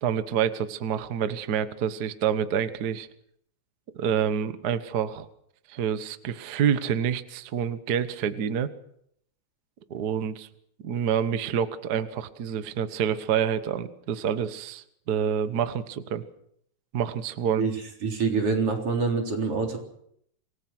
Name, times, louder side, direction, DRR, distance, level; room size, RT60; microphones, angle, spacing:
voice 1, 0.0-3.1 3.9-5.3 5.7-8.7 9.9-10.5 10.8-16.2 16.9-17.7, right 8 dB, 70° right, 11 dB, 0.9 m, -27 dB
voice 2, 18.0-19.8, right 4 dB, 45° right, 2 dB, 4.6 m, -25 dB
27.0 x 19.0 x 6.1 m, 0.71 s
omnidirectional pair, 3.7 m